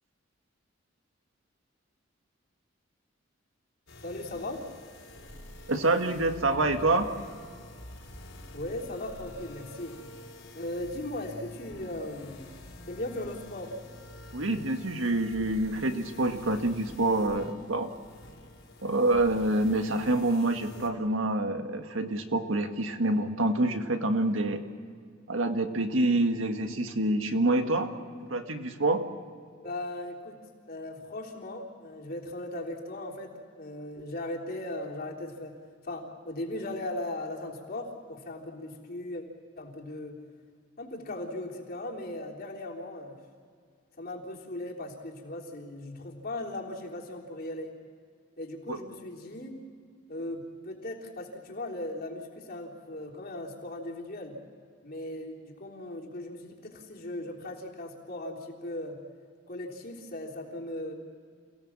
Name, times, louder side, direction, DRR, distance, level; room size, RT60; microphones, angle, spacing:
sound 1, 3.9-20.9, left 1 dB, 75° left, 4.1 m, -47 dB
voice 1, 4.0-4.6 8.5-10.0 10.5-12.6 12.9-13.7 29.6-35.6 35.8-39.2 39.6-40.2 40.8-43.2 44.0-47.7 48.4-49.6 50.1-54.4 54.8-59.0 59.5-60.9, left 1 dB, 50° left, -1 dB, 3.6 m, -38 dB
voice 2, 5.7-7.1 14.3-17.9 18.8-24.6 25.3-27.9 28.3-29.0 48.7-48.8, right 2 dB, 85° right, 6 dB, 1.8 m, -27 dB
29.0 x 17.0 x 7.4 m, 2.1 s
head